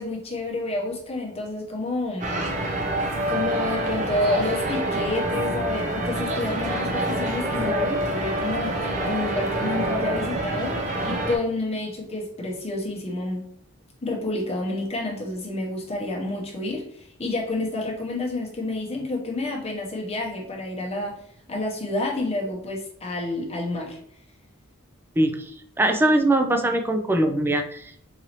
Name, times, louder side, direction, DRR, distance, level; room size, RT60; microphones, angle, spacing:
voice 1, 0.0-2.4 3.3-13.5 14.0-21.2 21.5-24.0, left 2 dB, 30° left, -1 dB, 0.9 m, -29 dB
sound 1, 2.2-11.4, right 1 dB, 35° right, 0.6 m, -26 dB
voice 2, 25.2-25.5 25.8-27.9, right 1 dB, 10° right, 5 dB, 0.3 m, -21 dB
4.0 x 2.7 x 2.9 m, 0.65 s
head